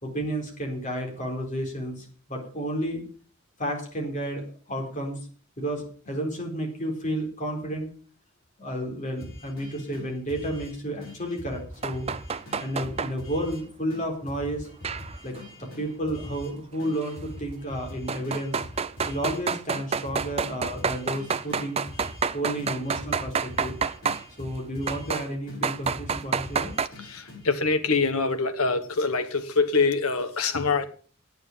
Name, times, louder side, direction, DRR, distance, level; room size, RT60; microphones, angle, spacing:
voice 1, 0.0-3.0 3.6-5.2 5.6-7.9 8.6-12.1 12.6-14.7 15.2-18.6 19.1-21.8 22.3-23.8 24.4-26.7, right 1 dB, 35° left, 4.1 m, -31 dB
sound 1, 9.2-10.7 11.0-13.6 13.9-14.0 14.3-16.5 16.8-19.4 19.7-22.3 22.6-25.2 25.5-27.5, left 1 dB, 60° left, 6.4 m, -43 dB
sound 2, 11.8-13.1 14.8-15.4 17.0-17.1 18.1-24.2 24.9-25.3 25.6-26.9, right 5 dB, 30° right, 0.5 m, -28 dB
voice 2, 27.1-30.9, left 4 dB, 90° left, 1.5 m, -24 dB
9.4 x 9.3 x 7.3 m
head